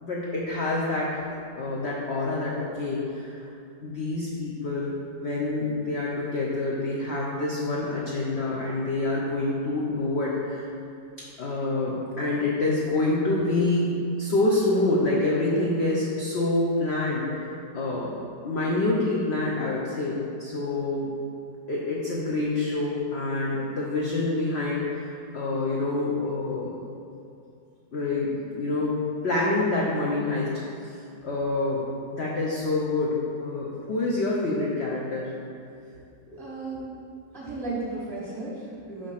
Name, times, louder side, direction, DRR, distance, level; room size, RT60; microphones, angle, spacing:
voice 1, 0.0-1.2 1.6-3.5 3.8-10.7 11.4-17.3 17.7-18.2 18.4-21.1 21.7-26.8 27.9-28.9 29.2-30.5 30.8-31.0 31.2-31.8 32.1-35.3, left 2 dB, 75° left, -4 dB, 0.6 m, -27 dB
voice 2, 36.3-36.9 37.3-39.1, right 2 dB, 20° right, -7 dB, 0.7 m, -34 dB
5.2 x 3.3 x 5.6 m, 2.6 s
omnidirectional pair, 1.9 m